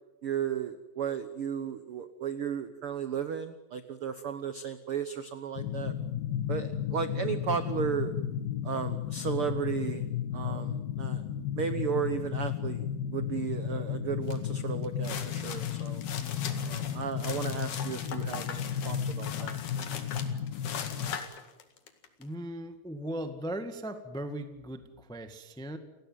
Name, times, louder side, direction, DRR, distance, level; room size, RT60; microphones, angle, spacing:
voice 1, 0.2-5.9 6.5-8.1 8.6-10.0 10.3-11.2 11.6-12.8 13.1-16.0 16.6-19.6, right 8 dB, 85° right, 11 dB, 1.2 m, -34 dB
sound 1, 5.6-21.2, left 9 dB, 90° left, 3.1 m, -34 dB
sound 2, 14.3-14.5 14.8-22.2, left 7 dB, 60° left, 3.3 m, -40 dB
voice 2, 22.2-25.8, right 1 dB, 5° left, 8 dB, 0.4 m, -38 dB
29.5 x 17.0 x 9.2 m, 1.0 s
omnidirectional pair, 4.1 m